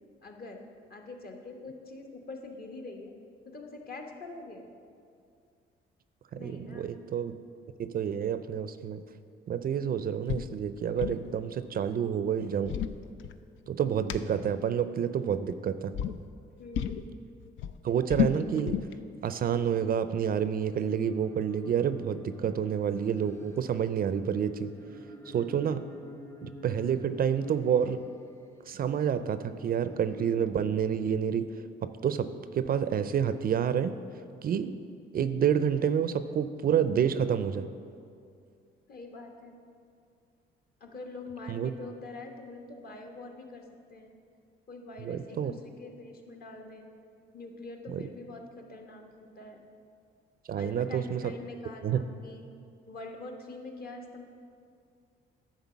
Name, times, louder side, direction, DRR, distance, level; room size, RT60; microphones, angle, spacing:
voice 1, 0.2-0.6 0.9-3.1 3.4-4.7 6.3-6.9 16.6-17.1 38.9-39.6 40.8-44.1 44.7-46.9 47.3-49.0 49.3-49.6 50.6-52.4 52.9-54.2, left 2 dB, 50° left, 2 dB, 1.2 m, -44 dB
voice 2, 6.3-7.3 7.8-9.0 9.5-12.8 13.7-15.9 17.8-18.8 19.2-24.7 25.3-25.8 26.4-28.0 28.7-31.5 31.8-33.9 34.4-34.7 35.1-37.7 41.5-41.7 45.0-45.5 47.9-48.1 50.5-51.3 51.8-52.0, right 8 dB, 50° right, 12 dB, 0.4 m, -29 dB
sound 1, 10.3-10.5 10.8-11.3 12.4-13.7 14.1-14.2 15.3-15.6 15.9-16.2 16.7-17.1 17.4-19.0, left 10 dB, 75° left, 0.4 m, -31 dB
sound 2, 20.9-28.7 29.4-30.4, equal, 15° left, 0.7 m, -50 dB
10.5 x 3.9 x 7.1 m, 2.4 s
cardioid pair, 90°, 20 cm